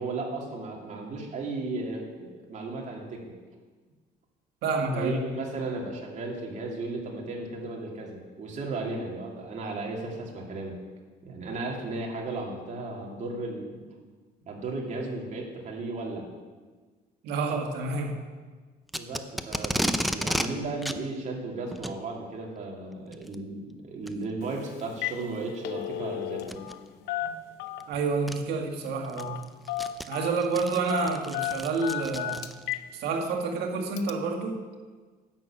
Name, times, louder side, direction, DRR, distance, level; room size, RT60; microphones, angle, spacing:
voice 1, 0.0-3.2 4.9-10.8 11.2-13.8 14.5-16.3 18.9-26.6, right 3 dB, 45° right, -1 dB, 2.6 m, -35 dB
voice 2, 4.6-5.2 17.2-18.2 27.2-27.3 27.9-29.4 30.1-32.4 32.9-34.6, right 4 dB, 80° right, 2 dB, 1.8 m, -29 dB
Packing tape duct tape, 18.9-20.5 20.8-21.0 21.7-22.0 23.1-23.4 24.1-24.2 24.8-24.9 26.4-26.7 27.8-27.9 28.3-28.4 28.9-32.8, equal, ahead, 0.6 m, -32 dB
Telephone, 24.4-24.6 24.9-25.2 25.5-26.8 27.1-28.0 29.2-29.4 29.7-30.4 30.9-32.9 33.3-33.4 34.0-34.1, left 13 dB, 80° left, 0.7 m, -33 dB
10.5 x 6.9 x 7.4 m, 1.4 s
cardioid pair, 110°, 17 cm